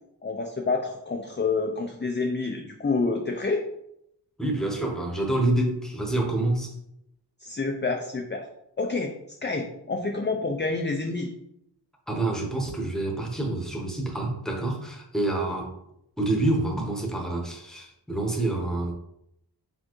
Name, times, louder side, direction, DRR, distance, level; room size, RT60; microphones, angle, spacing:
voice 1, 0.2-3.6 7.4-8.5 8.8-9.1 9.4-11.3, left 3 dB, 25° left, 2 dB, 0.4 m, -28 dB
voice 2, 4.4-6.7 12.1-15.7 16.2-18.9, right 2 dB, ahead, 1 dB, 1.0 m, -27 dB
4.4 x 3.5 x 3.0 m, 0.78 s
wide cardioid pair, 60°, 41 cm